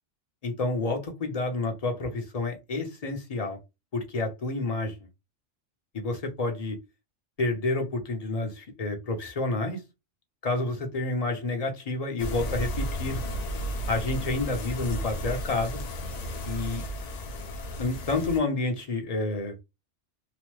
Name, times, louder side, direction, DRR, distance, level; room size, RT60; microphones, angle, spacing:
voice 1, 0.4-3.6 3.9-4.9 5.9-6.8 7.4-9.8 10.4-13.2 13.9-15.8 16.5-16.8 17.8-19.5, left 2 dB, 40° left, 0.7 m, -29 dB
sound 1, 12.2-18.4, equal, 80° left, 0.3 m, -33 dB
2.9 x 2.1 x 3.0 m
omnidirectional pair, 1.2 m